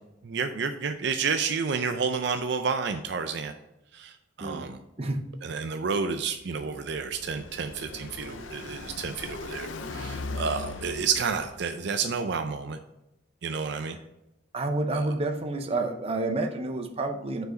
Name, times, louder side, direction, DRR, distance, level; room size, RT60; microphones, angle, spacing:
voice 1, 0.2-3.5 3.9-4.8 5.4-12.8 13.4-14.0 14.9-15.1, right 5 dB, 60° right, 7 dB, 0.5 m, -30 dB
voice 2, 5.0-5.3 14.5-17.5, right 2 dB, 30° right, 5 dB, 0.7 m, -29 dB
Car passing by, 6.4-12.0, left 3 dB, 80° left, 0.6 m, -39 dB
6.6 x 4.7 x 4.3 m, 0.93 s
head